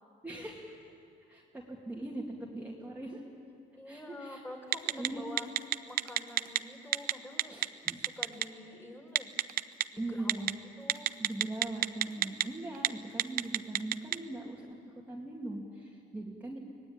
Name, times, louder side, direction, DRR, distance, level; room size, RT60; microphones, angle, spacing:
voice 1, 0.2-0.8 1.3-2.3 2.5-3.2 3.9-4.4 4.9-5.3 7.5-8.0 10.0-10.6 11.2-14.7 15.1-16.6, right 2 dB, 10° right, -3 dB, 2.4 m, -40 dB
voice 2, 3.7-5.5 5.9-7.6 7.9-9.3 9.9-10.4 10.8-11.2, left 1 dB, 15° left, 1 dB, 4.0 m, -47 dB
Telephone, 4.7-5.1 5.4-6.6 6.9-7.1 7.4-8.4 9.2-9.8 10.3-10.5 10.9-12.4 12.7-12.9 13.2-14.2, right 13 dB, 60° right, 0.7 m, -27 dB
25.0 x 19.0 x 8.9 m, 2.5 s
cardioid pair, 110°, 17 cm